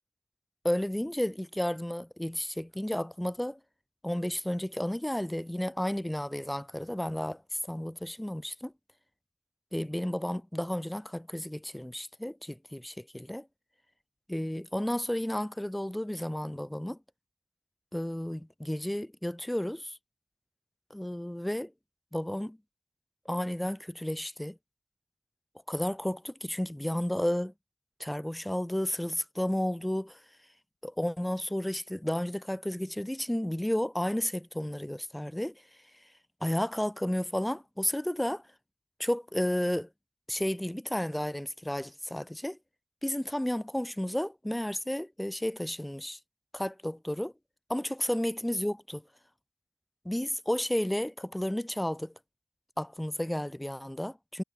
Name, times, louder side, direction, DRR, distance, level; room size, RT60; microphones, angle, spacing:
voice 1, 0.6-3.6 4.0-8.7 9.7-13.5 14.3-17.0 17.9-20.0 20.9-21.7 22.1-22.6 23.3-24.6 25.7-27.5 28.0-30.2 30.8-35.5 36.4-38.4 39.0-39.9 40.3-42.6 43.0-46.2 46.5-47.3 47.7-49.0 50.0-52.1 52.8-54.4, left 1 dB, 10° left, 0.5 m, -32 dB
wide cardioid pair, 65°, 0 cm